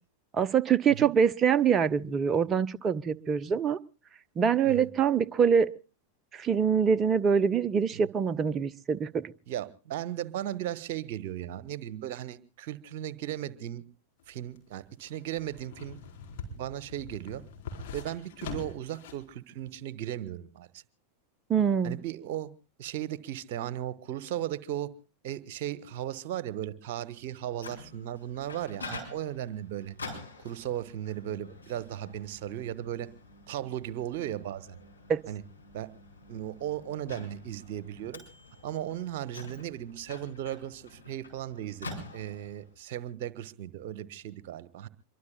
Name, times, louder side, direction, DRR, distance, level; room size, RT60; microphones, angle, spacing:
voice 1, 0.3-3.8 4.4-5.7 6.3-9.2 21.5-22.0 35.1-35.2, right 7 dB, 25° right, 12 dB, 0.9 m, -24 dB
voice 2, 9.5-13.8 14.3-16.0 16.5-17.4 17.9-20.8 21.8-22.5 22.8-24.9 25.2-29.9 30.4-33.1 33.5-34.8 35.3-35.4 35.7-35.9 36.3-38.2 38.6-44.9, right 12 dB, 50° right, 17 dB, 1.3 m, -36 dB
sound 1, 14.2-19.3 19.7-19.8, left 4 dB, 50° left, 4.4 m, -43 dB
Microwave oven, 27.2-42.7, left 3 dB, 80° left, 5.1 m, -47 dB
26.0 x 23.0 x 2.3 m, 0.36 s
figure-of-eight pair, 90°, 0 cm